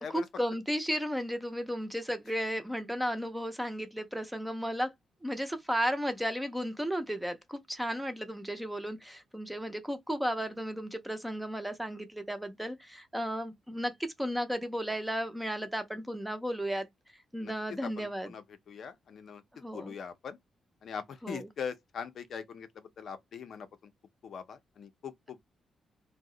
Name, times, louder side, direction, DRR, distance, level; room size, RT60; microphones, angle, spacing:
voice 1, 0.1-4.9 5.2-13.9 14.2-16.9 17.3-18.3 19.6-20.0 21.2-21.5, equal, 5° right, 0.5 m, -34 dB
voice 2, 17.8-19.4 19.7-20.4 20.8-22.7 23.0-23.9 24.2-25.4, left 6 dB, 50° left, 0.5 m, -41 dB
2.7 x 2.0 x 3.7 m
wide cardioid pair, 165°, 0 cm